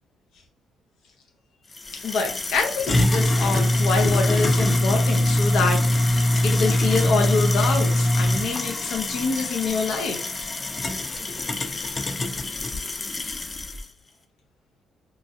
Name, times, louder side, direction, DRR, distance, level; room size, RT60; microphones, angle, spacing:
sound 1, 1.8-13.8, left 1 dB, 25° left, 0.4 m, -23 dB
voice 1, 2.0-10.3, left 4 dB, 85° left, 0.6 m, -26 dB
3.0 x 2.4 x 2.6 m
cardioid pair, 135°, 0 cm